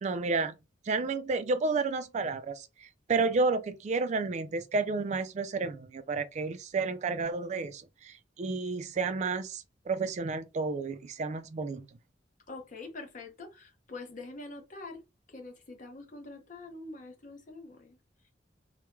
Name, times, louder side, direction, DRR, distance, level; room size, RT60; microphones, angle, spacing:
voice 1, 0.0-0.5 0.9-11.8, right 4 dB, 40° right, 0.3 m, -31 dB
voice 2, 12.5-15.0 15.3-18.0, left 2 dB, 45° left, 0.7 m, -45 dB
2.2 x 2.1 x 3.0 m
head